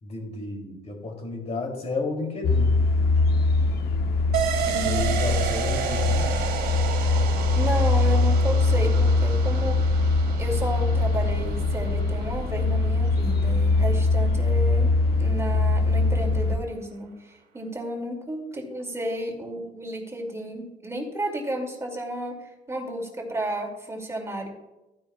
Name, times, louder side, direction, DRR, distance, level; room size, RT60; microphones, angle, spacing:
voice 1, 0.0-2.8 4.8-6.3, left 2 dB, 40° left, 2 dB, 3.0 m, -32 dB
sound 1, 2.4-16.6, left 3 dB, 70° left, 0.9 m, -22 dB
sound 2, 4.3-13.7 14.0-14.1, right 8 dB, 70° right, 2.1 m, -32 dB
voice 2, 4.7-5.3 7.6-10.0 10.4-24.5, right 1 dB, 15° right, 0 dB, 2.5 m, -32 dB
15.0 x 9.8 x 2.4 m, 1.0 s
cardioid pair, 110°, 17 cm